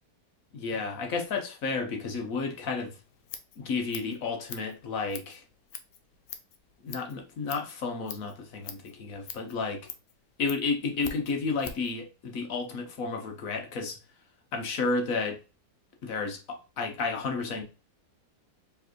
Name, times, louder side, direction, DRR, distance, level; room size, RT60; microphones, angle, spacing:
voice 1, 0.5-3.0 3.6-5.4 6.8-9.9 10.4-14.0 14.5-15.4 16.0-17.6, left 4 dB, 60° left, 1.2 m, -32 dB
Scissors, 3.0-12.0, left 8 dB, 80° left, 1.2 m, -45 dB
4.5 x 3.3 x 3.0 m
omnidirectional pair, 1.8 m